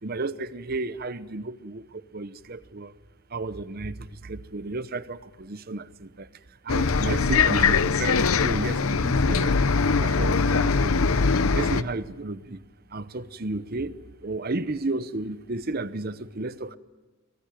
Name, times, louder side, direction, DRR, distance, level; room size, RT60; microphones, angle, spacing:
voice 1, 0.0-2.9 3.3-6.3 6.6-9.6 9.9-11.2 11.5-12.6 12.9-16.8, right 2 dB, 45° right, 0.8 m, -33 dB
Bus, 6.7-11.8, left 4 dB, 75° left, 0.8 m, -22 dB
25.5 x 19.5 x 9.2 m
head